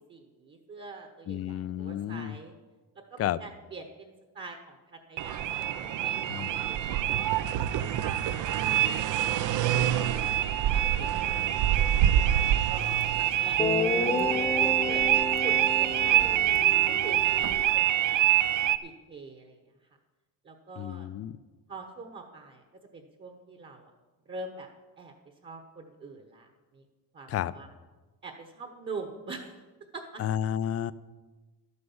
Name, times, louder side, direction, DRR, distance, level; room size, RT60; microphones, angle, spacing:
voice 1, 0.0-2.5 2.9-9.3 9.9-10.3 10.7-16.3 16.9-18.1 18.8-19.6 20.4-21.1 21.7-22.6 22.9-23.9 24.3-24.7 25.0-25.1 25.4-26.5 26.7-26.8 27.1-27.7 28.2-29.6 29.9-30.2, right 3 dB, 30° right, 4 dB, 1.2 m, -44 dB
voice 2, 1.3-2.4 3.2-3.4 6.3-6.6 20.8-21.4 27.3-27.5 30.2-30.9, left 10 dB, 40° left, 17 dB, 0.5 m, -31 dB
sound 1, 5.2-18.8, right 12 dB, 55° right, 0.6 m, -25 dB
Guitar, 13.0-13.1 13.6-17.7, left 3 dB, 15° left, 0.9 m, -32 dB
12.0 x 9.7 x 7.1 m, 1.2 s
cardioid pair, 150°, 36 cm